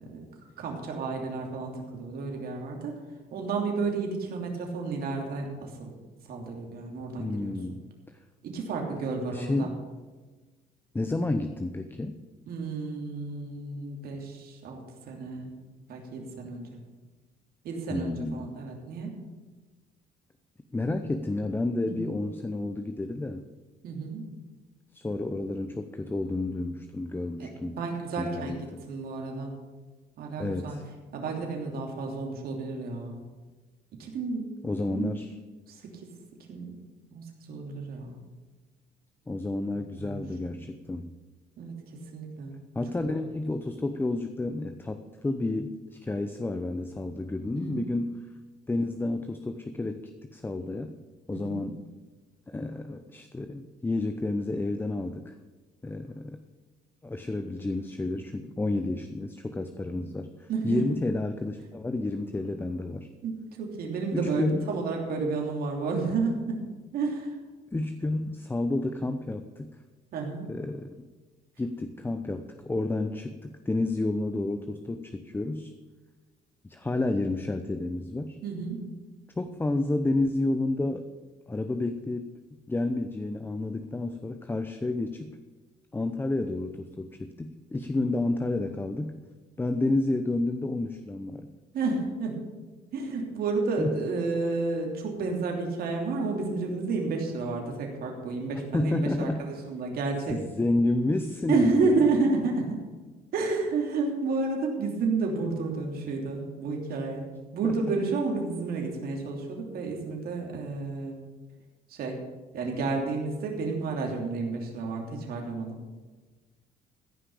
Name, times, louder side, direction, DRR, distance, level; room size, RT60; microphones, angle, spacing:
voice 1, 0.6-2.9 3.3-5.9 6.3-7.5 8.4-9.7 12.5-15.5 15.9-16.7 17.6-19.1 21.9-22.0 23.8-24.2 27.4-27.5 27.8-29.5 30.2-30.8 31.1-33.2 34.0-34.5 34.8-35.2 35.7-36.1 36.5-36.7 37.1-38.2 40.0-40.2 41.6-41.7 42.1-42.6 47.4-47.9 51.3-51.6 60.5-60.8 63.2-66.6 66.9-67.3 70.1-70.5 78.4-78.8 91.7-92.4 92.9-100.4 101.5-102.8 103.3-107.2 107.5-111.2 111.9-112.2 112.5-115.8, right 3 dB, 65° right, 1 dB, 3.0 m, -31 dB
voice 2, 7.2-7.8 9.3-9.8 10.9-12.2 17.9-18.5 20.7-23.4 24.9-27.8 28.2-28.8 30.4-30.8 34.6-35.3 39.3-41.1 42.7-48.2 48.7-51.0 51.3-51.8 52.5-55.3 55.8-56.4 57.0-63.1 64.1-64.6 67.7-69.7 70.5-71.0 71.6-75.7 76.6-78.4 79.4-81.1 81.5-82.3 82.7-85.3 85.9-89.2 89.6-91.5 93.8-94.0 98.7-99.5 100.3-101.9 107.6-107.7, left 2 dB, 10° left, 8 dB, 0.7 m, -30 dB
14.5 x 5.7 x 8.4 m, 1.3 s
cardioid pair, 110°, 17 cm